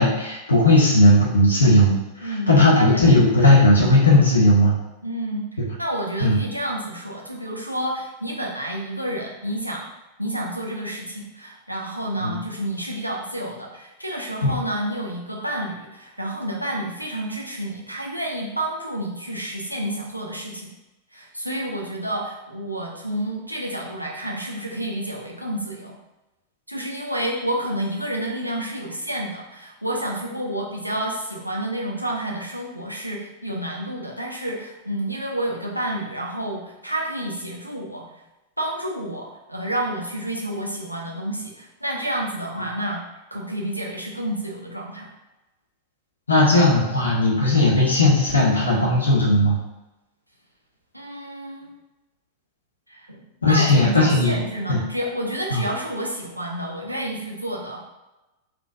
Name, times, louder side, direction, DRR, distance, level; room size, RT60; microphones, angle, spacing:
voice 1, 0.0-1.9 2.2-4.8 5.6-5.7 6.2-6.4 12.2-12.4 14.4-14.5 46.3-49.6 53.4-54.4 54.7-54.8 55.5-55.6, left 1 dB, 75° left, -5 dB, 0.7 m, -17 dB
voice 2, 2.2-3.0 5.0-5.4 5.8-9.8 10.2-20.7 21.1-26.0 26.7-38.2 38.6-43.0 43.3-45.1 50.9-51.7 52.9-57.8, right 1 dB, 90° right, -2 dB, 0.5 m, -29 dB
3.8 x 2.5 x 2.5 m, 1.0 s
figure-of-eight pair, 90°, 0 cm